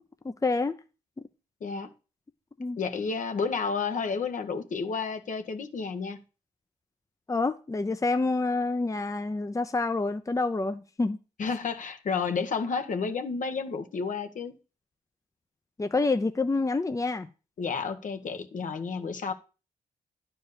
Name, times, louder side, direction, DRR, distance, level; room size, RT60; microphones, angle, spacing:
voice 1, 0.2-0.7 2.6-2.8 7.3-11.2 15.8-17.3, left 3 dB, 20° left, 0.8 m, -27 dB
voice 2, 1.6-1.9 2.8-6.2 11.4-14.5 17.6-19.3, left 5 dB, 60° left, 1.3 m, -31 dB
10.5 x 4.6 x 6.8 m
supercardioid pair, 50°, 15 cm